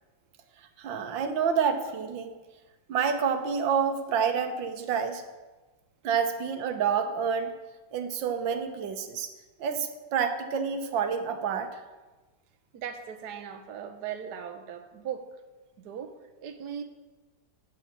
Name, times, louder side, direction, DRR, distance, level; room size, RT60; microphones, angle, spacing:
voice 1, 0.8-2.3 2.9-5.2 6.0-7.5 7.9-9.3 9.6-11.8, right 6 dB, 80° right, 8 dB, 1.6 m, -28 dB
voice 2, 12.7-15.2 15.8-16.1 16.4-16.8, right 8 dB, 65° right, 7 dB, 1.3 m, -38 dB
14.0 x 4.9 x 7.2 m, 1.2 s
omnidirectional pair, 2.0 m